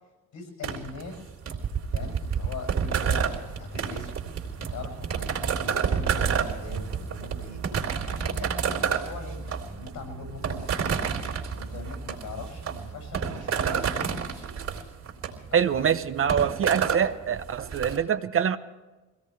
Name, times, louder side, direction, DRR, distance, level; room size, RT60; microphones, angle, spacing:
voice 1, 0.3-1.3 1.9-4.1 4.7-7.6 8.0-11.0 11.5-14.5 15.5-15.6, left 3 dB, 75° left, 7.2 m, -41 dB
sound 1, 0.6-18.0, right 6 dB, 60° right, 3.3 m, -29 dB
voice 2, 15.5-18.6, right 8 dB, 45° right, 0.9 m, -24 dB
22.5 x 17.5 x 3.4 m
cardioid pair, 90°, 30 cm